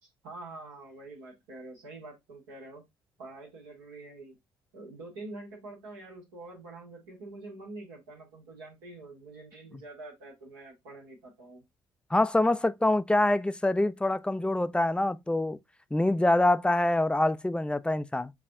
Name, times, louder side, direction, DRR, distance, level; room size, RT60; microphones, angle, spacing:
voice 1, 0.0-2.8 3.2-4.4 4.7-11.6, right 2 dB, 80° right, 1.6 m, -46 dB
voice 2, 12.1-15.6 15.9-18.3, left 1 dB, 10° left, 0.4 m, -25 dB
6.9 x 2.4 x 2.6 m
hypercardioid pair, 50°, 12 cm